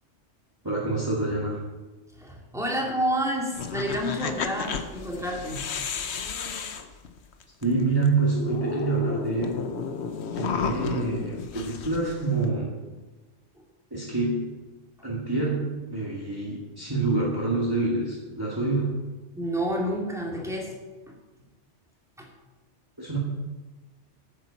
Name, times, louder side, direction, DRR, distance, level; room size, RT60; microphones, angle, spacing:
voice 1, 0.6-1.6 7.6-9.5 10.4-12.7 13.9-14.5 15.0-18.9 23.0-23.2, right 3 dB, 20° right, -5 dB, 2.1 m, -27 dB
voice 2, 2.2-5.6 19.3-20.8 21.1-21.2 22.2-22.3, equal, 5° right, -1 dB, 2.3 m, -29 dB
sound 1, 3.5-7.6 8.0-8.1 8.3-12.5, left 6 dB, 70° left, 1.1 m, -32 dB
9.6 x 8.0 x 7.1 m, 1.2 s
omnidirectional pair, 1.2 m